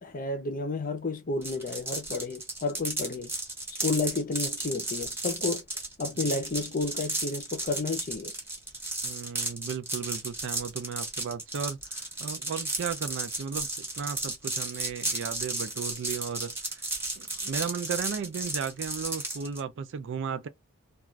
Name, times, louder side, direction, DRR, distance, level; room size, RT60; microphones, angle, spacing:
voice 1, 0.0-3.3 3.7-5.6 6.0-8.3, left 3 dB, 40° left, 0.6 m, -31 dB
sound 1, 1.4-19.6, right 2 dB, 10° right, 0.9 m, -34 dB
voice 2, 9.0-16.8 17.2-20.5, right 6 dB, 55° right, 0.4 m, -35 dB
2.4 x 2.4 x 3.1 m
head